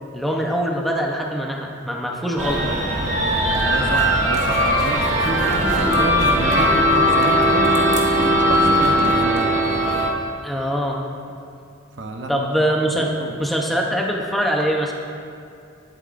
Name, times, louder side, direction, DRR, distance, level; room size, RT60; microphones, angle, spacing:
voice 1, 0.1-2.7 10.4-11.0 12.3-13.1 13.4-14.9, equal, ahead, -1 dB, 0.8 m, -23 dB
sound 1, 2.4-10.1, equal, 35° right, 1.2 m, -19 dB
voice 2, 3.2-7.8 8.2-9.5 12.0-12.6 13.1-13.3, right 2 dB, 65° right, 4 dB, 0.9 m, -29 dB
20.0 x 8.2 x 2.6 m, 2.5 s
head